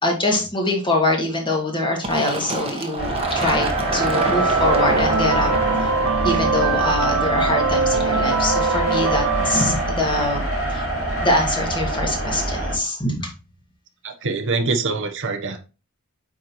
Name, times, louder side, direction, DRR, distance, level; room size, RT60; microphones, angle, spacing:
voice 1, 0.0-5.5 5.8-5.9 6.2-10.4 10.7-10.9 11.2-13.3, left 1 dB, 20° left, 1 dB, 2.1 m, -23 dB
Fill (with liquid), 2.0-7.4, right 3 dB, 25° right, 1.3 m, -27 dB
sound 1, 3.0-12.8, right 1 dB, 50° left, 4.1 m, -26 dB
sound 2, 3.4-10.4, right 4 dB, 85° right, 1.1 m, -23 dB
voice 2, 14.0-15.6, right 3 dB, 60° right, 6 dB, 1.0 m, -24 dB
9.2 x 4.6 x 3.1 m, 0.32 s
head